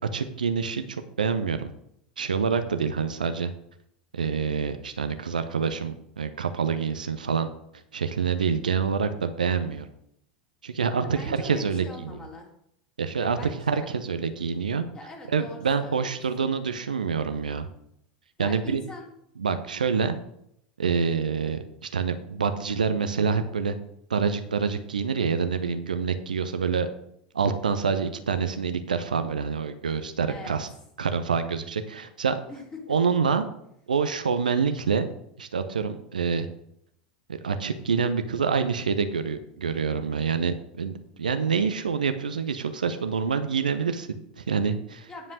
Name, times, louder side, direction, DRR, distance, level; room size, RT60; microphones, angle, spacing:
voice 1, 0.1-1.7 2.2-3.5 4.1-7.5 7.9-9.9 10.6-12.1 13.0-13.4 13.7-14.8 15.3-17.7 18.4-18.8 19.4-20.2 20.8-21.6 21.9-23.8 24.1-26.9 27.3-30.7 31.0-32.4 32.9-33.5 33.9-35.1 35.4-36.5 37.3-40.9 41.2-45.1, right 5 dB, 75° right, 9 dB, 0.8 m, -26 dB
voice 2, 11.0-12.5 13.2-13.9 14.9-16.5 18.4-19.1 21.4-21.6 30.3-30.6 32.5-33.0 45.1-45.3, left 3 dB, 20° left, -1 dB, 3.5 m, -42 dB
9.9 x 5.4 x 6.5 m, 0.74 s
figure-of-eight pair, 85°, 4 cm